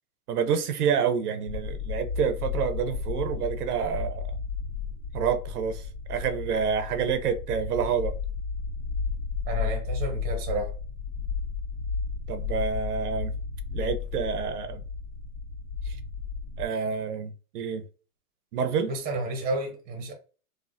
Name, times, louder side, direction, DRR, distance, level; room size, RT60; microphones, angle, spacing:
voice 1, 0.3-4.3 5.1-8.1 12.3-13.3 13.7-14.8 15.9-16.0 16.6-17.8 18.5-18.9, right 7 dB, 90° right, 0.7 m, -28 dB
sound 1, 1.5-16.7, left 5 dB, 60° left, 1.5 m, -33 dB
voice 2, 9.5-10.7 18.9-20.1, right 2 dB, 20° right, 0.7 m, -31 dB
3.3 x 2.1 x 2.5 m
hypercardioid pair, 145°, 44 cm